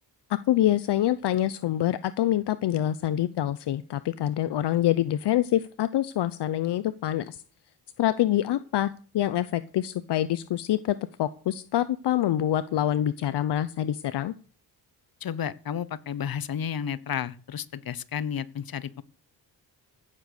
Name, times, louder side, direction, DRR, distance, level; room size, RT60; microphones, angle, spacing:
voice 1, 0.3-7.4 8.0-14.3, left 12 dB, 70° left, 15 dB, 0.8 m, -26 dB
voice 2, 15.2-19.0, left 8 dB, 55° left, 17 dB, 1.1 m, -32 dB
15.5 x 7.5 x 6.6 m, 0.42 s
cardioid pair, 70°, 43 cm